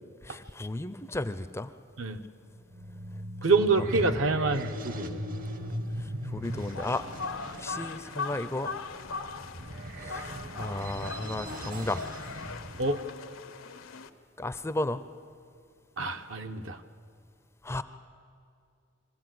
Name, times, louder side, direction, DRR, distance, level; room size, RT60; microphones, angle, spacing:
voice 1, 0.2-1.7 3.8-4.1 6.0-7.0 7.3-8.9 9.9-12.0 14.4-15.0 17.6-17.8, left 2 dB, 15° left, 12 dB, 0.5 m, -34 dB
sound 1, 2.5-13.0, right 1 dB, 45° right, 1.0 m, -39 dB
voice 2, 3.4-5.2 12.8-13.0 16.0-16.8, right 3 dB, 70° right, 6 dB, 1.0 m, -26 dB
sound 2, 6.4-14.1, left 4 dB, 80° left, 0.9 m, -40 dB
24.0 x 15.0 x 7.7 m, 2.4 s
head